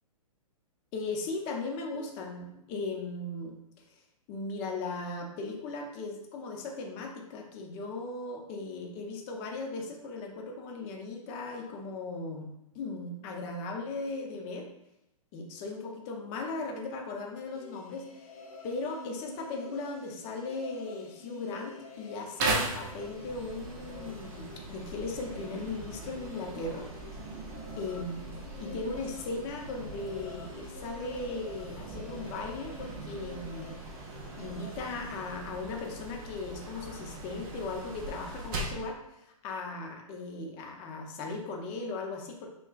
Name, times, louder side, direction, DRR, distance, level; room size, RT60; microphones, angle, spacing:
voice 1, 0.9-3.6 3.9-4.0 4.3-12.5 12.7-14.7 15.3-18.1 18.6-26.9 27.8-33.8 34.4-42.5, left 3 dB, 30° left, 1 dB, 0.6 m, -37 dB
sound 1, 17.5-35.3, left 2 dB, 75° left, 0.7 m, -48 dB
sound 2, 22.4-38.9, right 2 dB, 35° right, 0.6 m, -39 dB
6.3 x 2.2 x 2.4 m, 0.85 s
hypercardioid pair, 135°, 19 cm